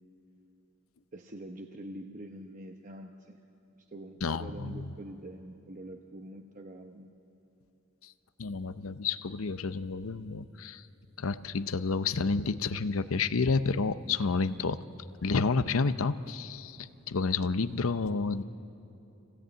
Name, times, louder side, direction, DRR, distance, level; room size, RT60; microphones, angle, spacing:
voice 1, 1.1-3.4 3.9-7.1, right 1 dB, 40° right, 3 dB, 0.9 m, -45 dB
voice 2, 4.2-4.9 8.0-8.1 8.4-10.9 11.2-14.8 15.2-18.4, left 4 dB, 85° left, 12 dB, 0.7 m, -30 dB
26.0 x 17.0 x 8.9 m, 2.9 s
head